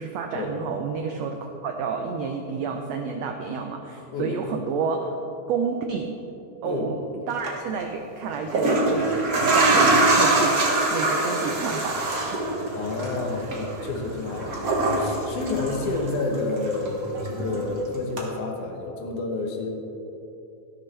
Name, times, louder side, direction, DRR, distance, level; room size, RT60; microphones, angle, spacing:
voice 1, 0.0-5.2 5.5-6.2 6.6-10.6 10.9-12.5 13.2-13.9, right 5 dB, 85° right, 4 dB, 1.4 m, -30 dB
sound 1, 7.3-7.5 8.3-16.4 16.7-17.7 18.2-18.3, right 2 dB, 50° right, 1.1 m, -23 dB
voice 2, 12.7-19.7, left 3 dB, 70° left, 2 dB, 2.5 m, -29 dB
13.0 x 12.0 x 3.3 m, 2.9 s
omnidirectional pair, 3.8 m